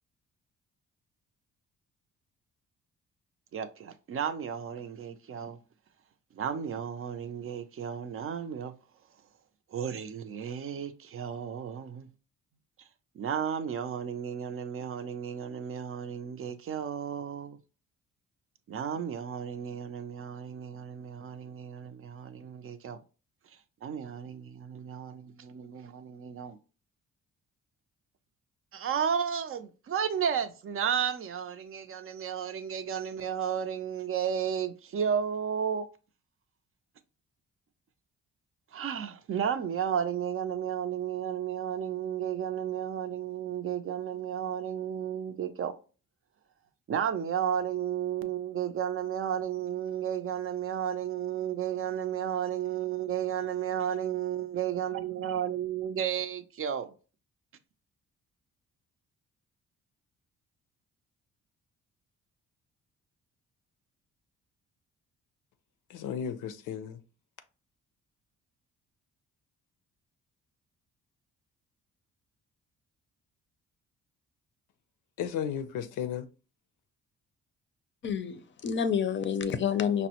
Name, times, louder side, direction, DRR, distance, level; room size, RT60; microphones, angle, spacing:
voice 1, 3.5-5.6 6.3-8.7 9.7-12.1 13.2-17.6 18.7-23.0 23.8-26.6 28.7-35.9 38.7-45.7 46.9-56.9, right 8 dB, 45° right, 0.5 m, -33 dB
voice 2, 65.9-67.0 75.2-76.3, left 8 dB, 85° left, 0.5 m, -34 dB
voice 3, 78.0-80.1, left 7 dB, 40° left, 0.5 m, -29 dB
5.2 x 2.0 x 2.8 m
cardioid pair, 90°, 30 cm